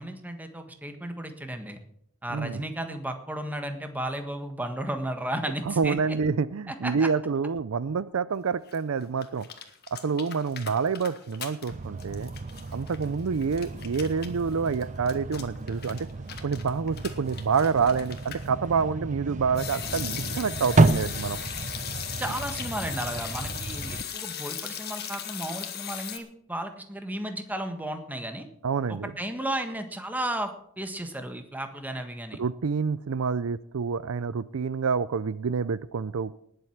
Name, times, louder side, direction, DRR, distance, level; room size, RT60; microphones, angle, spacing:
voice 1, 0.0-1.8 2.2-6.2 6.7-7.1 22.2-28.5 28.9-32.4, right 1 dB, 10° right, 6 dB, 1.5 m, -34 dB
voice 2, 2.3-2.6 5.7-9.5 9.9-12.3 12.7-16.1 16.4-21.4 28.6-29.1 32.4-36.4, right 5 dB, 75° right, 17 dB, 0.5 m, -27 dB
sound 1, 8.7-8.8 9.0-11.7 12.0-18.5 19.6-26.2, left 9 dB, 50° left, 1.7 m, -38 dB
sound 2, 11.7-24.0, right 2 dB, 35° right, 0.7 m, -31 dB
19.5 x 7.8 x 5.9 m, 0.68 s
head